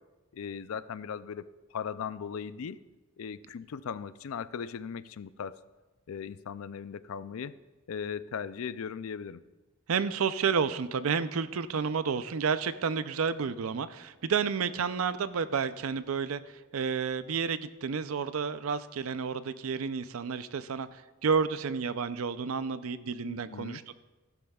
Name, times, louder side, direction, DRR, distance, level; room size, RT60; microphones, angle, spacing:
voice 1, 0.3-1.5 1.7-2.8 3.2-5.6 6.1-7.6 7.9-9.4 23.2-23.8, left 7 dB, 85° left, 15 dB, 0.4 m, -38 dB
voice 2, 9.9-16.4 16.7-23.9, right 6 dB, 85° right, 14 dB, 0.5 m, -30 dB
15.0 x 12.0 x 2.3 m, 1.2 s
head